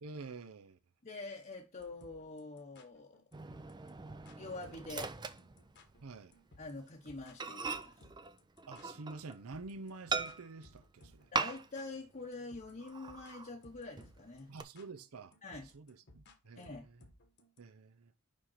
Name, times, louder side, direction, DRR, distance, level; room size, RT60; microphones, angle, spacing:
voice 1, 0.0-0.8 6.0-6.3 8.7-11.3 14.5-15.3 15.7-17.0 17.6-18.1, right 3 dB, 70° right, 0.6 m, -48 dB
voice 2, 1.0-3.2 4.4-5.2 6.6-8.0 11.3-14.5 15.4-15.7 16.6-16.9, left 3 dB, 35° left, 0.9 m, -46 dB
sound 1, 1.8-17.6, left 1 dB, 50° left, 1.2 m, -62 dB
Microwave oven, 3.3-6.2 6.5-6.7 7.1-7.2 7.4-9.5 10.1-10.7 11.3-11.9 12.2-12.3 12.8-13.5 14.0-14.6, right 4 dB, 20° right, 0.5 m, -40 dB
5.3 x 5.0 x 5.6 m
head